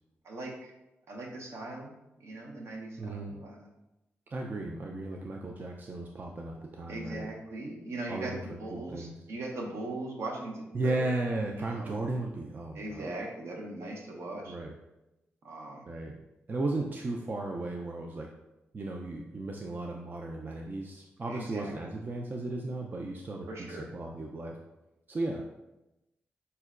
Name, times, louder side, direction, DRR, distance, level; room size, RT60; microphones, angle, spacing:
voice 1, 0.2-0.7 1.1-3.7 6.9-11.2 11.5-12.0 12.7-14.6 15.4-15.9 21.3-21.7 23.5-24.0, right 2 dB, 65° right, 1 dB, 0.7 m, -40 dB
voice 2, 3.0-3.3 4.3-7.3 8.1-9.1 10.7-13.1 14.5-14.7 15.9-16.1 16.5-18.3 18.7-24.5 25.1-25.4, right 2 dB, 40° right, 1 dB, 0.4 m, -35 dB
5.4 x 2.1 x 2.4 m, 0.95 s
cardioid pair, 55°, 5 cm